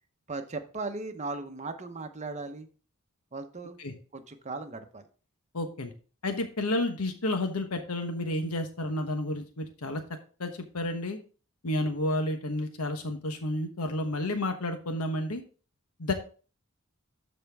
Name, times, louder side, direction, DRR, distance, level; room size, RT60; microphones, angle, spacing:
voice 1, 0.3-2.7 3.3-3.8 4.1-5.0, right 3 dB, 30° right, 7 dB, 0.9 m, -37 dB
voice 2, 5.5-5.9 6.2-10.0 10.4-11.2 11.6-15.4 16.0-16.1, left 1 dB, 85° left, 6 dB, 1.2 m, -31 dB
12.5 x 4.4 x 3.5 m, 0.38 s
head